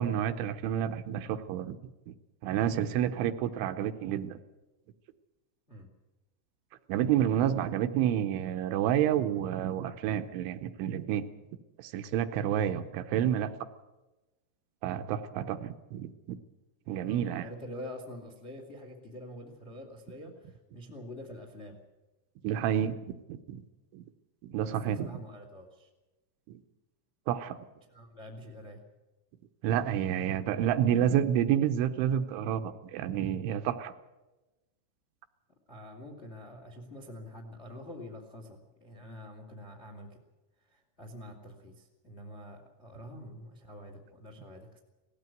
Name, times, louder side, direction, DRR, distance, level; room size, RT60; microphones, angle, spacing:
voice 1, 0.0-1.8 2.1-2.2 2.4-4.4 6.9-11.2 11.8-13.5 14.8-16.4 16.9-17.5 22.4-23.6 23.9-24.0 24.4-25.1 26.5-26.6 27.3-27.6 29.6-33.9, right 10 dB, 80° right, 9 dB, 3.0 m, -29 dB
voice 2, 16.9-21.8 24.6-25.9 27.9-28.8 35.7-40.2 40.6-44.8, left 1 dB, 50° left, 4 dB, 0.7 m, -46 dB
18.5 x 15.0 x 9.2 m, 1.1 s
omnidirectional pair, 5.7 m